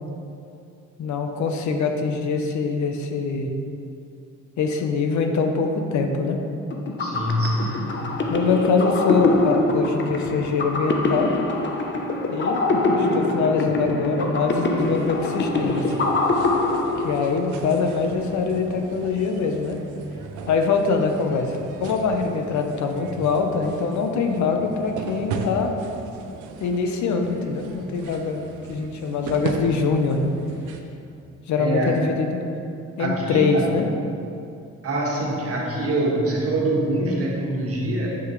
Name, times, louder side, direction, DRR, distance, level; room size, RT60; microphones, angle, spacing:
voice 1, 1.0-3.5 4.6-6.4 8.3-11.3 12.3-12.6 13.0-15.8 17.0-19.8 20.5-25.7 26.6-30.3 31.5-32.4 33.0-33.9, left 4 dB, 70° left, 4 dB, 0.8 m, -23 dB
sound 1, 6.7-17.5, left 2 dB, 40° left, 0.8 m, -24 dB
voice 2, 7.0-7.8 31.6-32.0 33.0-33.7 34.8-38.1, right 1 dB, 50° right, -2 dB, 1.5 m, -24 dB
sound 2, 14.8-30.8, right 5 dB, 90° right, 0.6 m, -37 dB
7.2 x 6.5 x 3.2 m, 2.6 s
cardioid pair, 90°, 30 cm